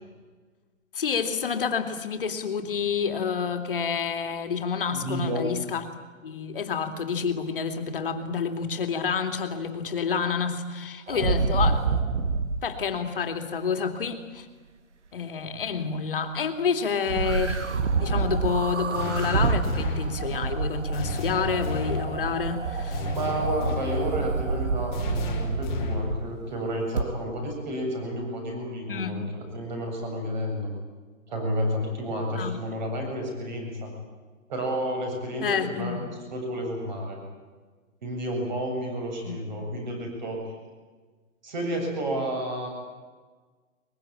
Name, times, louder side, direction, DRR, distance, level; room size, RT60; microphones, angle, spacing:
voice 1, 0.9-5.9 6.2-11.9 12.6-14.5 15.1-23.1 28.9-29.1 32.3-32.6 35.4-36.0 39.3-39.4, left 6 dB, 40° left, 6 dB, 2.7 m, -29 dB
voice 2, 4.9-5.5 23.1-29.2 29.5-30.7 31.3-33.9 34.5-36.0 36.3-37.2 38.0-40.5 41.4-42.7, equal, 35° right, 2 dB, 7.7 m, -31 dB
sound 1, 11.1-12.6 17.1-26.4 27.0-27.1, right 4 dB, 60° right, 2.0 m, -28 dB
sound 2, 18.9-20.1 20.9-22.1 22.9-24.1 24.9-26.1, left 3 dB, 10° left, 2.8 m, -32 dB
23.0 x 22.0 x 9.0 m, 1.4 s
hypercardioid pair, 175°, 40 cm